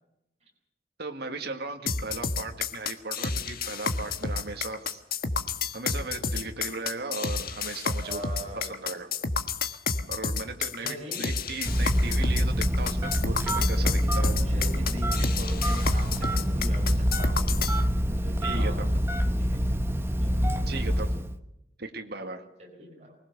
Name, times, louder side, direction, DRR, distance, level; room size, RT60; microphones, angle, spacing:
voice 1, 1.0-5.0 5.7-8.2 8.6-9.1 10.1-14.3 18.4-18.9 20.7-21.2 21.8-22.5, right 3 dB, 65° right, 4 dB, 2.1 m, -37 dB
sound 1, 1.9-17.8, left 4 dB, 55° left, 1.5 m, -30 dB
voice 2, 8.0-8.8 10.8-11.2 13.7-17.5 18.1-18.8 19.4-19.7 20.2-20.7 22.6-23.2, right 1 dB, 40° right, -1 dB, 5.0 m, -42 dB
Telephone, 11.7-21.4, equal, 15° right, 0.9 m, -26 dB
24.5 x 19.5 x 6.9 m, 0.85 s
head